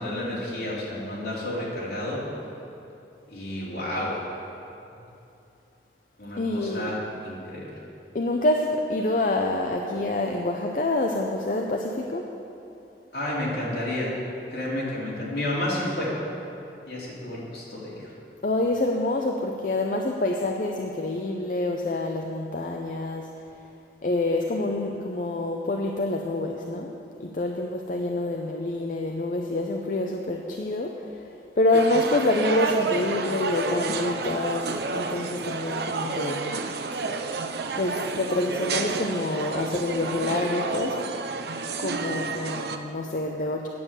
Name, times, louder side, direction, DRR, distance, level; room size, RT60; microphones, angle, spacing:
voice 1, 0.0-2.2 3.3-4.2 6.2-7.7 13.1-14.1 14.5-16.1 16.9-18.1, left 1 dB, 65° left, -6 dB, 2.8 m, -31 dB
voice 2, 6.4-6.9 8.1-12.2 18.4-23.3 24.0-26.9 27.2-31.2 31.6-36.6 36.9-37.0 37.7-41.0 41.8-43.7, left 2 dB, 45° left, 2 dB, 0.5 m, -27 dB
sound 1, 31.7-42.8, right 4 dB, 65° right, 0.6 m, -30 dB
9.5 x 7.2 x 6.7 m, 2.8 s
head